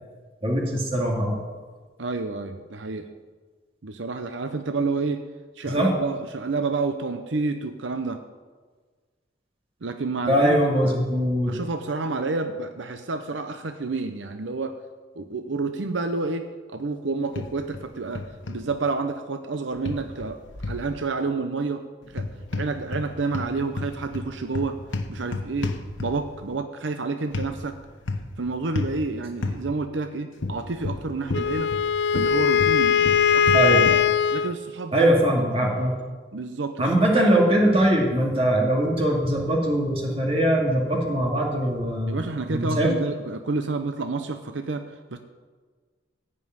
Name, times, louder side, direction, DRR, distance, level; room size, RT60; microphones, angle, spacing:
voice 1, 0.4-1.4 5.7-5.9 10.3-11.6 33.5-33.8 34.9-35.9 36.8-42.2 42.5-42.9, right 1 dB, 30° right, -1 dB, 2.5 m, -21 dB
voice 2, 2.0-3.1 3.8-5.3 5.6-8.2 9.8-11.1 11.5-14.8 15.2-20.4 20.7-21.8 22.1-24.8 25.1-27.8 28.4-31.7 32.1-33.6 34.3-35.1 36.3-36.9 42.1-45.2, right 3 dB, 80° right, 7 dB, 0.8 m, -29 dB
sound 1, 17.4-17.8 18.2-18.6 19.9-20.9 22.1-23.1 23.3-26.4 27.3-27.5 28.1-28.4 28.8-29.0 29.4-29.6 30.4-31.9 32.1-34.1, left 3 dB, 85° left, 1.1 m, -30 dB
Wind instrument woodwind instrument, 31.3-34.6, left 7 dB, 65° left, 0.4 m, -20 dB
15.5 x 5.5 x 9.5 m, 1.5 s
head